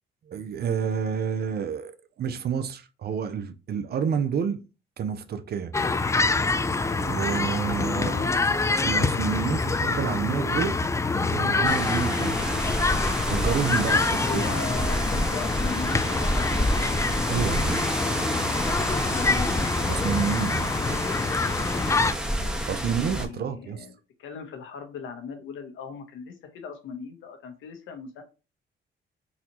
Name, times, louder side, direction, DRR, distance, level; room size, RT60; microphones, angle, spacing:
voice 1, 0.3-4.6 5.0-5.7 7.0-8.1 8.8-10.8 11.3-12.6 13.3-14.6 17.3-17.9 19.9-20.7 22.7-23.9, right 7 dB, 55° right, 0.6 m, -29 dB
sound 1, 5.7-22.1, left 3 dB, 15° left, 0.3 m, -26 dB
voice 2, 7.8-8.5 14.2-17.0 18.9-19.7 22.7-23.9 24.2-28.2, left 5 dB, 80° left, 1.0 m, -38 dB
sound 2, 11.6-23.3, equal, 5° right, 0.8 m, -29 dB
4.0 x 2.7 x 2.9 m
cardioid pair, 90°, 20 cm